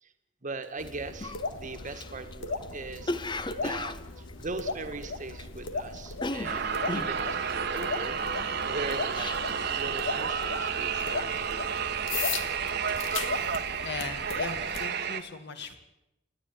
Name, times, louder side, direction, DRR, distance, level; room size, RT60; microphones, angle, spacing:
voice 1, 0.4-6.7 6.9-9.3 9.8-11.9, right 3 dB, 40° right, 8 dB, 1.6 m, -40 dB
sound 1, 0.8-14.8, left 4 dB, 90° left, 1.7 m, -37 dB
Cough, 0.8-0.9 1.2-5.7 5.9-9.7 10.0-10.4 10.7-11.1 11.6-12.2 12.5-14.2 14.5-14.8, left 2 dB, 25° left, 0.7 m, -37 dB
sound 2, 6.4-15.2, right 7 dB, 60° right, 1.2 m, -31 dB
voice 2, 13.8-15.8, left 4 dB, 60° left, 7 dB, 1.9 m, -38 dB
28.0 x 10.0 x 9.8 m, 0.92 s
head